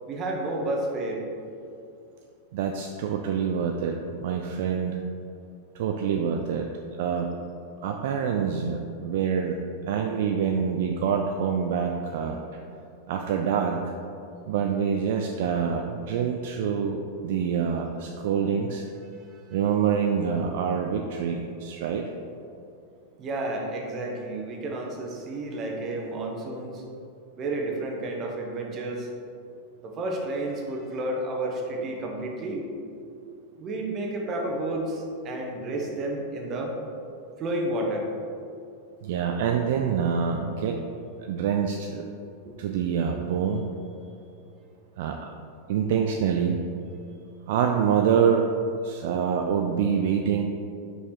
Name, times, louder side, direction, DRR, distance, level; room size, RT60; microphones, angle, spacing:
voice 1, 0.1-1.3 19.3-19.4 23.2-26.8 27.4-29.1 29.8-32.6 33.6-36.7 37.4-38.1 42.4-42.6, right 1 dB, 30° right, 0 dB, 1.0 m, -31 dB
voice 2, 2.5-5.0 5.7-6.7 7.0-7.4 7.8-9.6 9.9-12.4 13.1-13.8 14.5-18.8 19.5-22.0 39.0-40.8 41.2-42.0 42.6-43.6 45.0-45.2 45.7-46.6 47.5-48.5 48.8-50.4, right 7 dB, 55° right, 3 dB, 0.4 m, -26 dB
5.2 x 4.8 x 4.4 m, 2.6 s
figure-of-eight pair, 90°, 0 cm